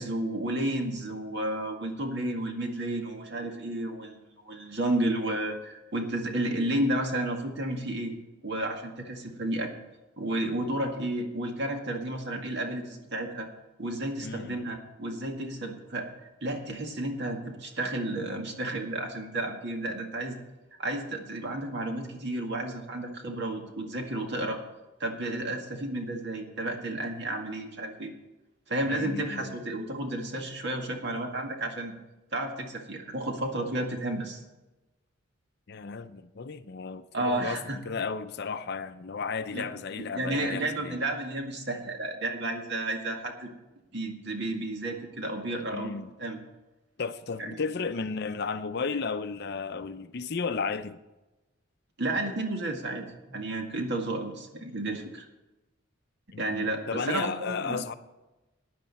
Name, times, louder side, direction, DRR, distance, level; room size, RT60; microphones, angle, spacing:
voice 1, 0.0-4.2 4.5-8.1 8.4-9.7 10.2-13.5 13.8-16.1 16.4-20.4 20.8-24.6 25.0-28.1 28.7-32.0 32.3-34.4 37.1-37.8 39.5-39.7 40.0-43.5 43.9-45.9 46.2-46.4 47.4-47.6 52.0-55.3 56.4-57.8, right 1 dB, 55° right, 2.0 m, -32 dB
voice 2, 14.2-14.6 28.9-29.6 35.7-41.0 45.7-46.1 47.0-51.0 56.3-57.9, left 5 dB, 50° left, 0.6 m, -34 dB
15.5 x 10.5 x 4.2 m
head